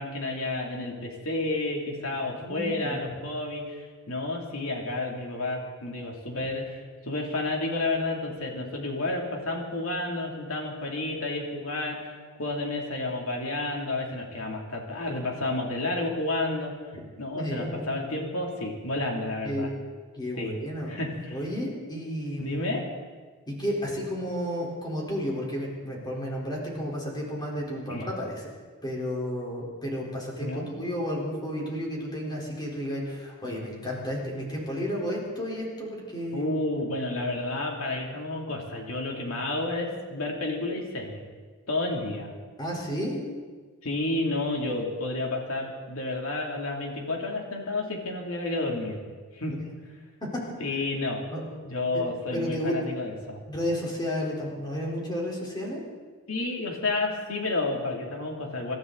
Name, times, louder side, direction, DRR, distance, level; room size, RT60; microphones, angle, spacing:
voice 1, 0.0-16.7 17.2-19.7 20.4-20.6 20.9-21.4 22.4-22.8 27.9-28.0 30.4-30.7 36.3-41.2 41.7-42.3 43.8-49.0 49.3-49.5 50.6-51.2 51.6-53.4 56.3-58.8, left 2 dB, 70° left, 1 dB, 2.9 m, -31 dB
voice 2, 2.1-3.0 17.3-17.9 19.4-19.7 20.1-21.0 21.3-22.6 23.5-28.5 28.8-36.5 42.6-43.2 49.5-49.6 50.3-50.4 51.3-51.4 51.9-52.0 52.3-52.8 53.5-55.8, equal, 20° left, -3 dB, 4.0 m, -32 dB
26.0 x 12.5 x 4.0 m, 1.5 s
head